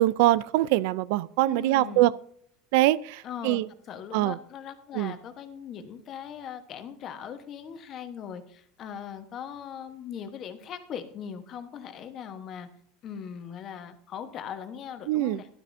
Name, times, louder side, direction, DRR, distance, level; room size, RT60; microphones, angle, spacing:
voice 1, 0.0-2.1 2.7-3.7 4.1-4.4 4.9-5.1 15.1-15.4, right 16 dB, 65° right, 0.4 m, -23 dB
voice 2, 1.4-2.1 3.2-12.7 13.0-15.5, left 8 dB, 35° left, 1.1 m, -40 dB
12.5 x 12.0 x 2.7 m
supercardioid pair, 155°, 0 cm